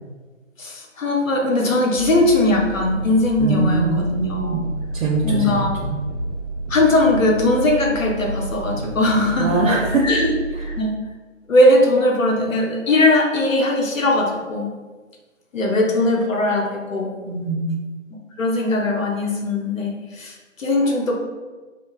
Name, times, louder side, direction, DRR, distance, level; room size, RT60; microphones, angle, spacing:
voice 1, 0.6-4.6 5.2-5.7 6.7-9.5 10.0-10.3 10.8-10.9 11.5-14.7 15.5-17.1 18.4-21.1, left 1 dB, 90° left, 0 dB, 0.8 m, -19 dB
sound 1, 1.9-10.8, right 2 dB, 35° right, 0.6 m, -30 dB
voice 2, 3.4-4.7 4.9-6.0 9.4-10.1 10.6-10.7 17.3-17.8, right 3 dB, 85° right, -2 dB, 0.6 m, -22 dB
2.9 x 2.1 x 2.3 m, 1.3 s
figure-of-eight pair, 170°, 38 cm